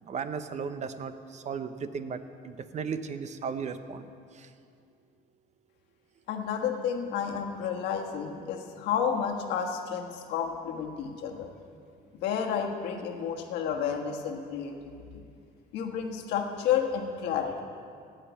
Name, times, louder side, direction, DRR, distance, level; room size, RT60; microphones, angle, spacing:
voice 1, 0.0-4.1 4.3-4.5, right 6 dB, 45° right, 11 dB, 0.8 m, -36 dB
voice 2, 6.3-11.5 12.2-15.2 15.7-17.6, left 7 dB, 80° left, 2 dB, 1.4 m, -31 dB
17.0 x 5.8 x 8.2 m, 2.4 s
cardioid pair, 100°, 17 cm